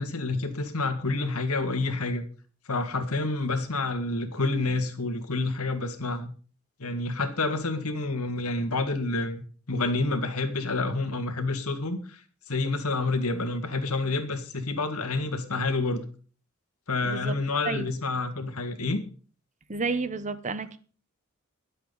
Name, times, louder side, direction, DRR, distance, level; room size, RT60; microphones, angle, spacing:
voice 1, 0.0-2.2 2.7-6.3 6.8-12.2 12.5-16.1 16.9-19.0, left 3 dB, 80° left, 2.0 m, -28 dB
voice 2, 17.0-17.4 17.6-17.9 19.7-20.8, right 4 dB, 35° right, 0.9 m, -31 dB
22.5 x 7.8 x 4.0 m
head